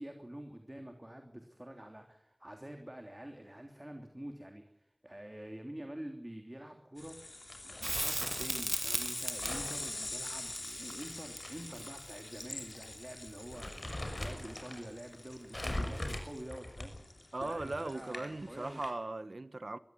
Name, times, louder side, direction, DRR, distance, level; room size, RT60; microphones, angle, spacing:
voice 1, 0.0-18.8, right 1 dB, 25° right, 3.1 m, -47 dB
sound 1, 7.0-18.9, left 2 dB, 80° left, 4.1 m, -45 dB
Crumpling crinkling, 7.5-8.5 9.4-11.5 11.8-11.9 12.7-12.9 13.3-14.8 15.5-17.1, left 1 dB, 45° left, 6.2 m, -41 dB
Crackle, 7.8-12.9 15.7-15.8, right 1 dB, 40° right, 2.2 m, -38 dB
voice 2, 17.3-19.8, right 2 dB, 75° right, 1.1 m, -38 dB
23.0 x 15.5 x 9.6 m
wide cardioid pair, 45°, 0 cm